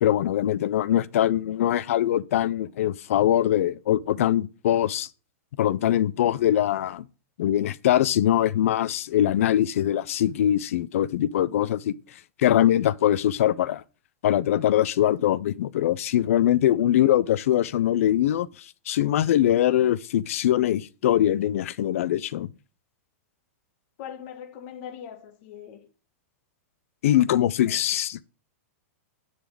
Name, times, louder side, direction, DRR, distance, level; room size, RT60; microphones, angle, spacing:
voice 1, 0.0-5.1 5.6-7.0 7.4-11.9 12.4-13.8 14.2-22.5 27.0-28.2, left 12 dB, 70° left, 0.6 m, -22 dB
voice 2, 24.0-25.9 27.6-27.8, left 9 dB, 45° left, 1.6 m, -41 dB
10.0 x 4.1 x 7.5 m
supercardioid pair, 155°, 8 cm